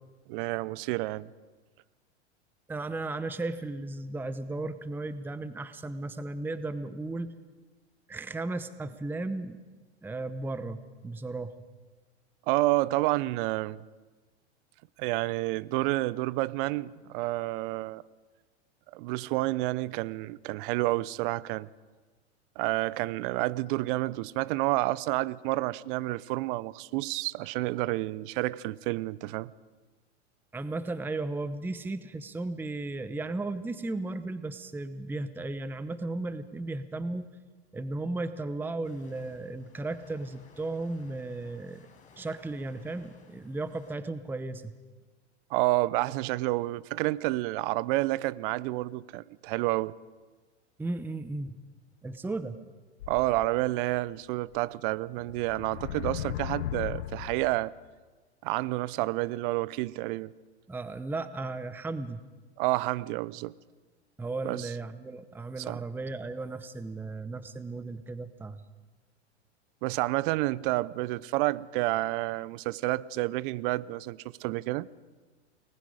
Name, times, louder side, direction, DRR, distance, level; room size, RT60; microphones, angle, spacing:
voice 1, 0.3-1.3 12.5-13.8 15.0-18.0 18.9-21.7 22.6-29.5 45.5-49.9 53.1-57.7 58.4-60.3 62.6-63.5 64.4-64.7 65.7-65.8 69.8-74.9, right 19 dB, 50° right, 0.7 m, -29 dB
voice 2, 2.7-7.3 8.1-9.6 10.0-11.5 30.5-37.3 37.7-41.9 42.2-44.7 50.8-51.5 52.0-52.6 60.7-62.2 64.2-68.6, right 2 dB, 5° right, 0.8 m, -35 dB
sound 1, 38.8-43.9, left 5 dB, 20° left, 5.4 m, -60 dB
sound 2, 53.0-54.0 54.5-54.6 55.2-57.7, left 12 dB, 75° left, 0.9 m, -37 dB
29.5 x 20.0 x 5.0 m
hypercardioid pair, 105°, 34 cm